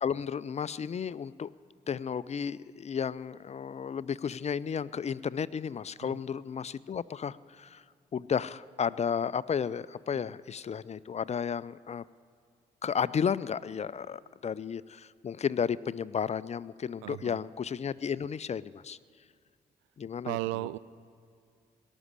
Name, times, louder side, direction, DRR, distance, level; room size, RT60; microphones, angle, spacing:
voice 1, 0.0-1.5 1.9-7.8 8.1-12.0 12.8-19.0 20.0-20.4, left 7 dB, 35° left, 19 dB, 0.4 m, -33 dB
voice 2, 17.0-17.4 20.3-20.8, right 18 dB, 75° right, 16 dB, 0.4 m, -35 dB
18.0 x 6.3 x 9.8 m, 2.3 s
hypercardioid pair, 40°, 20 cm